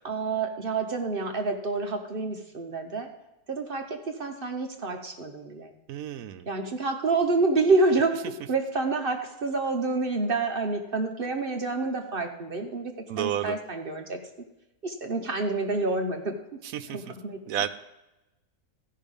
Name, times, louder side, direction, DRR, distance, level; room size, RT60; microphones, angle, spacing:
voice 1, 0.0-3.1 3.5-5.7 6.5-8.1 8.5-14.2 14.8-16.4 16.9-17.4, right 3 dB, 45° right, 5 dB, 0.9 m, -28 dB
voice 2, 5.9-6.5 13.1-13.6 16.6-17.1 17.5-17.7, right 11 dB, 75° right, 11 dB, 1.1 m, -31 dB
14.0 x 5.6 x 5.3 m, 0.97 s
omnidirectional pair, 1.5 m